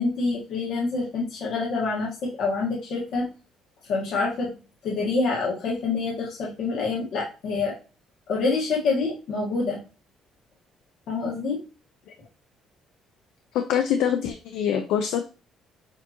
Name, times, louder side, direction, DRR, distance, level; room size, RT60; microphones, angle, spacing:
voice 1, 0.0-3.3 3.9-4.6 4.8-7.7 8.3-9.8 11.1-11.6, left 3 dB, 60° left, -3 dB, 1.3 m, -26 dB
voice 2, 13.5-15.3, left 8 dB, 90° left, 6 dB, 0.5 m, -24 dB
6.6 x 2.7 x 2.8 m, 0.33 s
cardioid pair, 165°, 0 cm